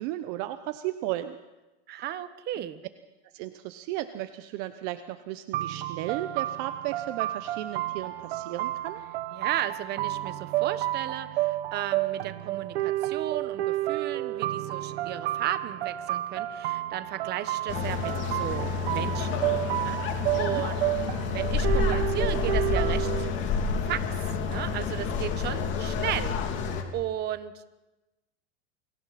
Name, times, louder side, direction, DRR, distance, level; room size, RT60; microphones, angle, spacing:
voice 1, 0.0-1.4 3.2-9.0 20.3-20.6, right 15 dB, 45° right, 10 dB, 1.0 m, -35 dB
voice 2, 1.9-2.8 9.3-19.4 19.7-20.8 21.3-23.1 23.8-24.0 24.4-26.6 26.9-27.7, right 12 dB, 30° right, 11 dB, 1.3 m, -34 dB
sound 1, 5.5-23.3, right 15 dB, 65° right, 1.3 m, -31 dB
sound 2, 17.7-26.8, left 5 dB, 35° left, 2.8 m, -29 dB
29.0 x 24.0 x 4.3 m, 1.1 s
supercardioid pair, 150°, 33 cm